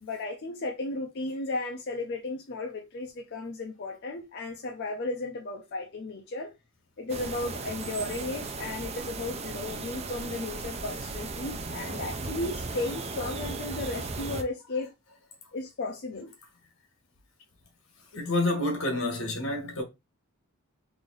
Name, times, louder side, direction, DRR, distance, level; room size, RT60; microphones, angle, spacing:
voice 1, 0.0-6.5 7.0-14.9 15.5-16.3, left 2 dB, 55° left, 0.5 m, -35 dB
sound 1, 7.1-14.4, right 3 dB, 30° right, 0.5 m, -36 dB
voice 2, 18.1-19.8, left 2 dB, 85° left, 1.5 m, -28 dB
3.4 x 2.6 x 3.7 m
head